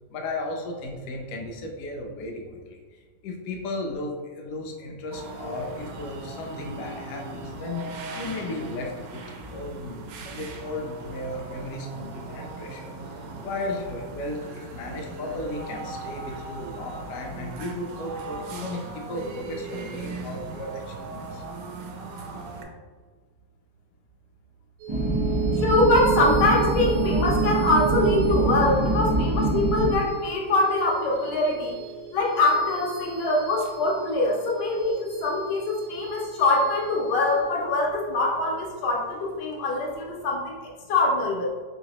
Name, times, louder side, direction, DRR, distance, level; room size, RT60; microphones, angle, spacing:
voice 1, 0.1-2.8 3.2-9.2 9.5-10.0 10.2-12.9 13.4-21.4, left 2 dB, 65° left, 1 dB, 0.8 m, -35 dB
sound 1, 5.1-22.6, right 3 dB, 70° right, 0.9 m, -38 dB
sound 2, 24.8-39.6, right 11 dB, 85° right, 1.2 m, -34 dB
sound 3, 24.9-29.9, right 2 dB, 30° right, 0.5 m, -24 dB
voice 2, 25.6-31.7 32.1-41.5, left 2 dB, 85° left, -2 dB, 1.4 m, -24 dB
3.9 x 2.8 x 2.9 m, 1.4 s
omnidirectional pair, 1.8 m